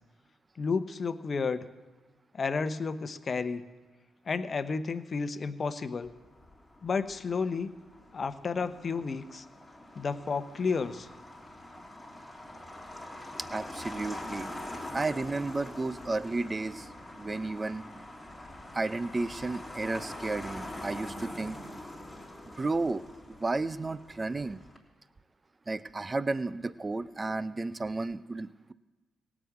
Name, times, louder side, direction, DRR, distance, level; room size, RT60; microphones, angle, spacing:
voice 1, 0.6-1.6 2.3-3.6 4.3-6.1 6.8-7.7 8.1-9.4 10.0-11.1, left 4 dB, 45° left, 12 dB, 0.9 m, -31 dB
Motor vehicle (road), 6.0-24.8, left 1 dB, 5° left, 3.5 m, -44 dB
voice 2, 13.5-14.5 14.9-16.9 17.2-17.8 18.7-21.6 22.6-24.6 25.7-28.7, right 3 dB, 30° right, 16 dB, 0.6 m, -33 dB
17.0 x 6.2 x 8.6 m, 1.3 s
supercardioid pair, 50°, 0 cm